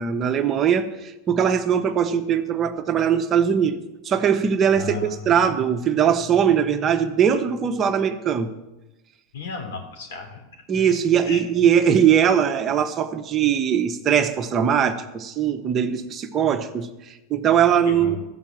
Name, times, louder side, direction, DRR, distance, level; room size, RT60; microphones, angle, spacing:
voice 1, 0.0-3.8 4.0-8.5 10.7-18.1, right 8 dB, 35° right, 7 dB, 1.0 m, -21 dB
voice 2, 4.8-5.4 9.3-10.4 11.3-11.4 17.9-18.2, left 4 dB, 85° left, 2 dB, 3.6 m, -34 dB
14.0 x 5.8 x 7.4 m, 0.97 s
supercardioid pair, 120°, 0 cm